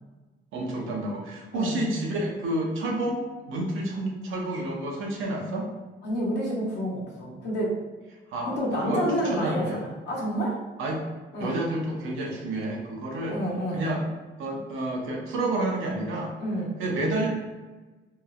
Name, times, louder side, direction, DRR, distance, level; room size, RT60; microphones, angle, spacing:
voice 1, 0.5-5.7 8.3-9.8 10.8-11.1 11.4-13.4 13.7-14.1 14.4-16.3 16.8-17.3, right 1 dB, 85° right, -1 dB, 0.7 m, -29 dB
voice 2, 1.5-1.8 6.0-7.8 8.6-10.6 11.3-11.6 13.3-13.9 16.4-16.8, equal, 60° left, -4 dB, 1.0 m, -29 dB
2.9 x 2.0 x 2.4 m, 1.2 s
cardioid pair, 90°, 20 cm